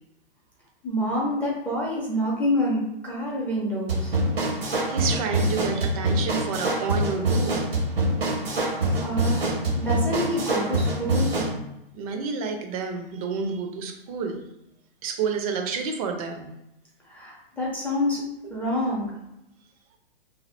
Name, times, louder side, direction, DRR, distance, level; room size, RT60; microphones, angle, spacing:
voice 1, 0.8-4.1 9.0-11.3 17.1-19.1, left 1 dB, 5° left, -5 dB, 0.6 m, -27 dB
sound 1, 3.9-11.6, right 1 dB, 85° right, 1.1 m, -25 dB
voice 2, 4.5-7.6 11.9-14.4 15.0-16.5, right 5 dB, 40° right, 4 dB, 0.6 m, -30 dB
2.7 x 2.3 x 3.2 m, 0.85 s
hypercardioid pair, 125°, 30 cm